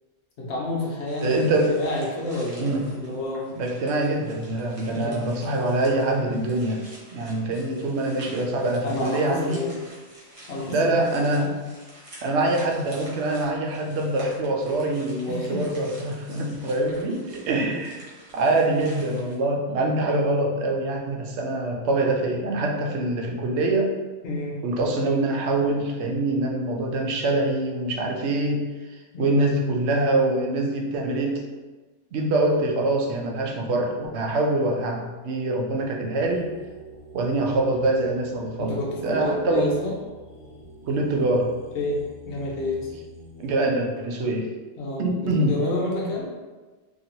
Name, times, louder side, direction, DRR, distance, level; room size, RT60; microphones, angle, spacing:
voice 1, 0.4-3.6 4.9-5.3 8.8-9.8 10.2-11.5 15.3-15.6 24.2-24.6 29.1-29.4 38.6-40.0 41.7-42.9 44.8-46.3, left 2 dB, 85° left, -3 dB, 1.1 m, -30 dB
sound 1, 1.1-19.3, right 1 dB, 35° right, 0.8 m, -48 dB
voice 2, 1.2-1.7 2.6-2.8 3.6-6.8 7.1-9.7 10.7-11.5 12.2-18.1 18.3-23.9 24.6-28.6 29.2-31.4 32.1-36.5 37.1-38.7 39.0-39.8 40.9-41.5 43.4-44.5 45.0-45.5, right 2 dB, 90° right, 1 dB, 0.9 m, -24 dB
sound 2, 36.2-43.5, right 1 dB, 50° left, 1.2 m, -46 dB
2.9 x 2.7 x 2.8 m, 1.3 s
omnidirectional pair, 1.1 m